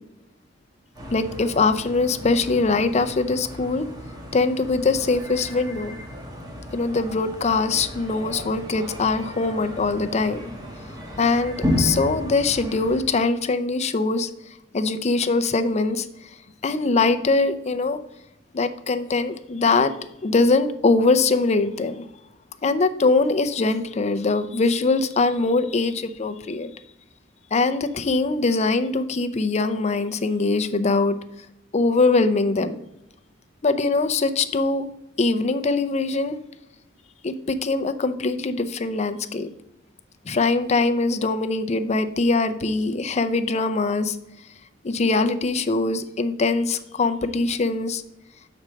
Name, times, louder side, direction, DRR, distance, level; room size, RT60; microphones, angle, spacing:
sound 1, 0.9-13.0, left 1 dB, 20° right, 1.4 m, -33 dB
voice 1, 1.1-3.9 4.3-5.9 6.7-10.5 11.2-14.3 14.7-16.1 16.6-18.0 18.5-19.9 20.2-22.1 22.6-26.7 27.5-31.2 31.7-32.8 33.6-34.9 35.2-36.4 37.2-39.5 40.3-44.2 44.8-48.0, left 3 dB, 35° left, 10 dB, 0.5 m, -22 dB
6.3 x 4.3 x 6.2 m, 0.88 s
head